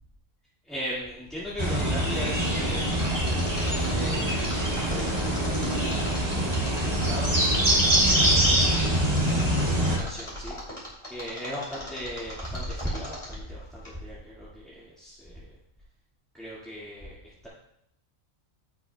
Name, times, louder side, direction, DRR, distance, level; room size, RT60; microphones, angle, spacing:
voice 1, 0.6-4.5 4.8-5.3 6.1-8.5 9.7-10.6 11.1-15.5 16.3-17.5, equal, ahead, -8 dB, 1.9 m, -38 dB
sound 1, 1.6-10.0, right 1 dB, 30° right, 1.9 m, -24 dB
Mechanisms, 2.9-13.5 13.8-13.9, left 1 dB, 25° left, 3.1 m, -40 dB
15.5 x 6.1 x 2.3 m, 0.76 s
omnidirectional pair, 1.4 m